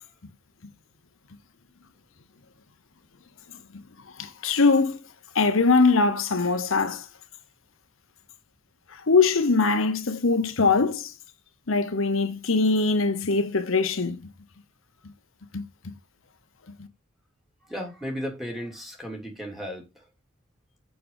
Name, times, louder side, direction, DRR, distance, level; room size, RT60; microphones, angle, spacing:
voice 1, 4.2-5.0 5.3-7.1 8.9-11.1 11.7-14.2 15.5-15.6, left 4 dB, 75° left, 1.0 m, -22 dB
voice 2, 17.7-19.9, equal, ahead, 3.0 m, -34 dB
7.0 x 6.4 x 3.9 m
head